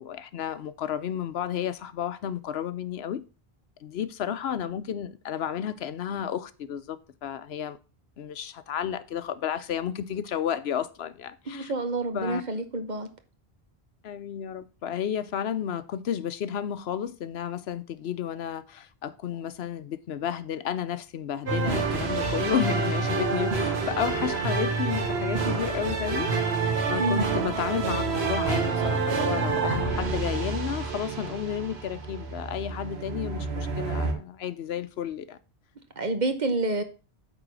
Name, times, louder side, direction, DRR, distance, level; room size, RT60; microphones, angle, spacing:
voice 1, 0.0-3.2 3.8-7.8 8.2-11.7 12.1-12.4 14.0-26.3 26.9-35.4, left 9 dB, 80° left, 0.9 m, -32 dB
voice 2, 11.5-13.1 27.0-27.2 36.0-36.8, right 2 dB, 45° right, 1.1 m, -28 dB
sound 1, 21.5-34.1, right 4 dB, 80° right, 1.6 m, -28 dB
8.9 x 4.0 x 6.1 m
omnidirectional pair, 1.1 m